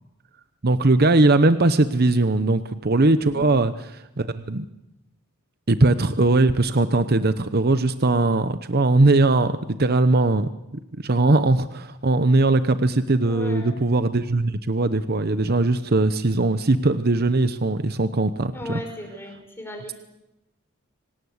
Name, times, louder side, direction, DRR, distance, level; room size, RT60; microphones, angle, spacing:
voice 1, 0.6-4.7 5.7-18.8, right 2 dB, 45° right, 12 dB, 0.9 m, -20 dB
voice 2, 3.3-3.6 13.2-13.8 18.5-19.9, left 1 dB, 10° left, 3 dB, 5.3 m, -36 dB
25.0 x 18.5 x 8.1 m, 0.90 s
head